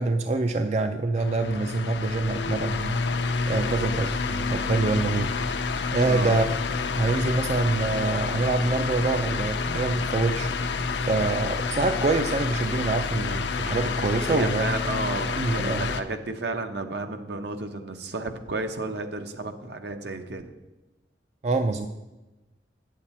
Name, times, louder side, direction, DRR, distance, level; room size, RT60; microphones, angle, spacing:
voice 1, 0.0-5.3 5.9-6.5 6.9-14.7 15.4-15.9 21.4-21.9, right 3 dB, 40° right, 7 dB, 0.4 m, -26 dB
sound 1, 1.1-16.0, left 4 dB, 75° left, 0.6 m, -28 dB
voice 2, 6.0-6.4 14.3-20.5, right 2 dB, 65° right, 7 dB, 0.8 m, -32 dB
9.0 x 7.5 x 4.3 m, 1.1 s
head